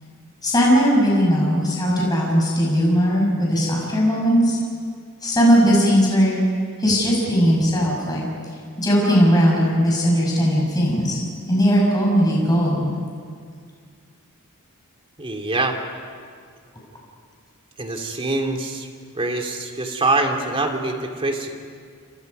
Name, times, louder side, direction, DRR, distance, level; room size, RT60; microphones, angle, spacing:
voice 1, 0.4-4.6 5.2-6.4 6.8-8.2 8.8-11.2 11.5-12.9, equal, 20° left, -3 dB, 6.1 m, -18 dB
voice 2, 15.2-15.8 17.8-18.9 19.1-21.6, right 2 dB, 25° right, 3 dB, 2.5 m, -24 dB
29.5 x 28.0 x 5.4 m, 2.1 s
head